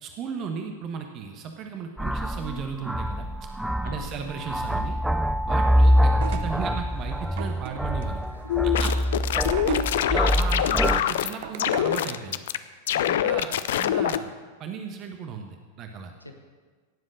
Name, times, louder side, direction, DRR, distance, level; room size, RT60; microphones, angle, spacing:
voice 1, 0.0-3.3 3.8-5.0 5.4-8.2 8.6-8.9 9.7-9.8 10.1-12.4 12.9-14.3 14.6-16.1, right 6 dB, 35° right, 4 dB, 1.2 m, -36 dB
sound 1, 2.0-11.0, equal, ahead, 0.5 m, -25 dB
voice 2, 3.8-4.3 5.4-5.7 8.3-8.7 9.1-9.9 16.2-16.4, left 1 dB, 85° left, 5 dB, 1.1 m, -47 dB
sound 2, 6.1-12.1, right 8 dB, 55° right, 0.9 m, -38 dB
sound 3, 8.5-11.3 11.6-12.6 12.9-14.2, left 11 dB, 60° left, 0.5 m, -24 dB
17.5 x 7.7 x 6.4 m, 1.5 s
figure-of-eight pair, 90°, 0 cm